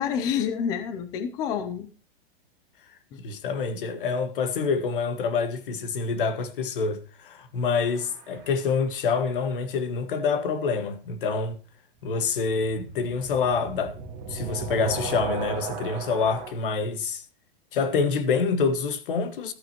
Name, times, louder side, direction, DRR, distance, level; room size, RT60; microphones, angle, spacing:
voice 1, 0.0-1.9 3.1-3.2, left 8 dB, 15° left, 0.5 m, -28 dB
voice 2, 3.2-11.6 12.0-13.9 14.3-17.2 17.7-19.5, left 5 dB, 65° left, 1.7 m, -26 dB
sound 1, 7.8-8.6 12.2-16.5, right 5 dB, 25° right, 2.0 m, -36 dB
14.0 x 8.5 x 3.0 m
supercardioid pair, 175°, 29 cm